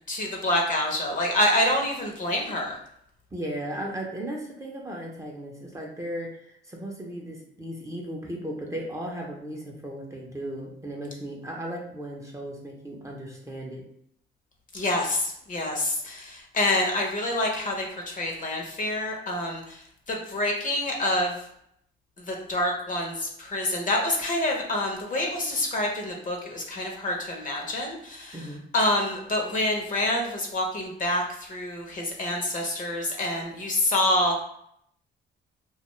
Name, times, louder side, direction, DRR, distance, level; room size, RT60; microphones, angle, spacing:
voice 1, 0.1-2.8 14.7-19.8 20.1-21.3 22.3-28.4 28.7-34.4, left 1 dB, 40° left, 1 dB, 0.7 m, -27 dB
voice 2, 3.3-6.4 6.7-13.9 28.3-28.6, right 1 dB, 15° right, -2 dB, 0.6 m, -36 dB
2.3 x 2.3 x 3.0 m, 0.72 s
cardioid pair, 90°, 20 cm